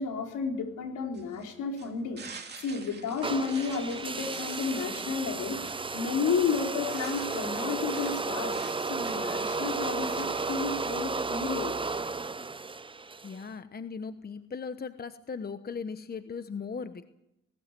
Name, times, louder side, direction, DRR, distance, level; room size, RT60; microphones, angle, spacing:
voice 1, 0.0-2.2 2.6-8.6 8.9-11.8, left 5 dB, 80° left, 2 dB, 4.4 m, -32 dB
sound 1, 1.1-11.0, right 5 dB, 35° right, 2.7 m, -48 dB
sound 2, 3.2-13.4, right 4 dB, 15° right, 0.7 m, -33 dB
voice 2, 13.2-17.1, left 5 dB, 30° left, 11 dB, 1.1 m, -38 dB
19.0 x 18.0 x 7.6 m, 0.85 s
cardioid pair, 90°, 30 cm